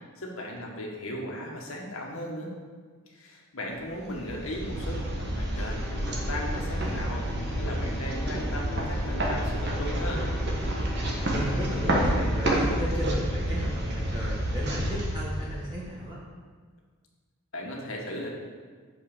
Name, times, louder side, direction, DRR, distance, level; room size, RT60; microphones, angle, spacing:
voice 1, 0.2-2.5 3.1-7.3 7.5-10.3 17.5-18.3, left 1 dB, 70° left, -1 dB, 1.6 m, -36 dB
sound 1, 3.9-16.0, right 1 dB, 50° right, 1.5 m, -29 dB
sound 2, 5.8-12.2, left 1 dB, 5° left, 0.6 m, -42 dB
voice 2, 11.3-16.2, equal, 20° right, -7 dB, 1.5 m, -34 dB
6.6 x 5.7 x 6.8 m, 1.5 s
head